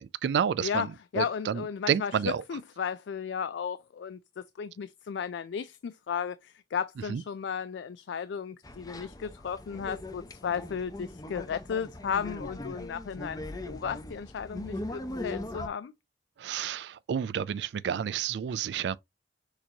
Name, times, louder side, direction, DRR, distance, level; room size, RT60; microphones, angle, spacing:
voice 1, 0.2-2.4 7.1-7.2 16.4-19.0, right 8 dB, 70° right, 0.3 m, -30 dB
voice 2, 1.1-2.2 2.5-15.9, left 7 dB, 85° left, 0.4 m, -34 dB
sound 1, 8.6-15.7, left 1 dB, 20° left, 0.6 m, -40 dB
6.4 x 2.9 x 2.8 m
head